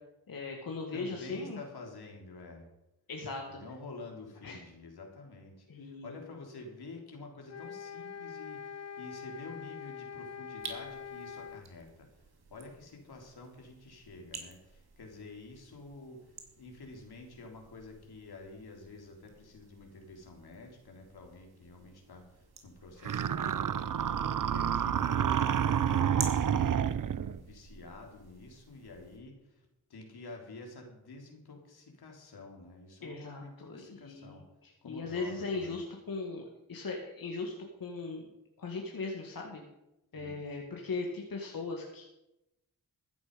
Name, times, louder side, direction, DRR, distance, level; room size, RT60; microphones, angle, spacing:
voice 1, 0.3-1.6 3.1-3.6 4.4-4.6 5.7-6.2 33.0-37.5 37.8-38.3 38.6-39.6 40.1-42.1, left 3 dB, 60° left, 0 dB, 2.2 m, -39 dB
voice 2, 0.9-2.7 3.5-12.1 12.5-24.0 24.2-26.6 27.2-34.4 34.8-35.8 40.2-40.4, left 3 dB, 80° left, 1 dB, 3.5 m, -49 dB
sound 1, 7.5-11.7, left 7 dB, 45° left, 0.7 m, -44 dB
sound 2, 10.6-29.2, right 5 dB, 75° right, 2.7 m, -50 dB
sound 3, 23.0-27.4, right 8 dB, 55° right, 0.7 m, -29 dB
15.0 x 10.5 x 5.4 m, 0.92 s
cardioid pair, 55°, 38 cm